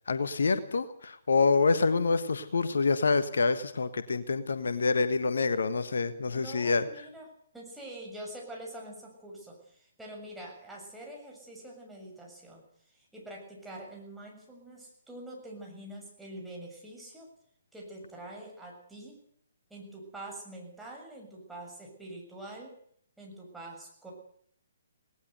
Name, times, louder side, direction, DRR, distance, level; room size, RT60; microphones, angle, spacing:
voice 1, 0.1-6.8, left 4 dB, 70° left, 12 dB, 1.5 m, -27 dB
voice 2, 6.3-7.3 7.5-17.3 17.7-19.2 19.7-22.7 23.2-24.1, right 1 dB, 5° right, -2 dB, 7.0 m, -45 dB
19.0 x 18.5 x 8.1 m, 0.63 s
figure-of-eight pair, 130°, 0 cm